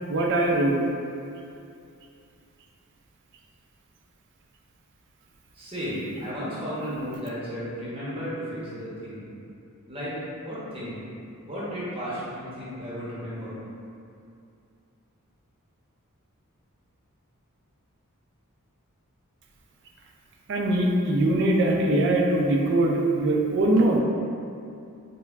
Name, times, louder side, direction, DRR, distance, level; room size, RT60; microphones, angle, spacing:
voice 1, 0.1-0.7 20.5-24.0, right 1 dB, 55° right, 0 dB, 0.4 m, -22 dB
voice 2, 5.5-9.3 9.9-10.1 10.4-11.0 11.5-13.6, equal, 25° right, -9 dB, 0.8 m, -34 dB
5.3 x 2.1 x 2.4 m, 2.5 s
head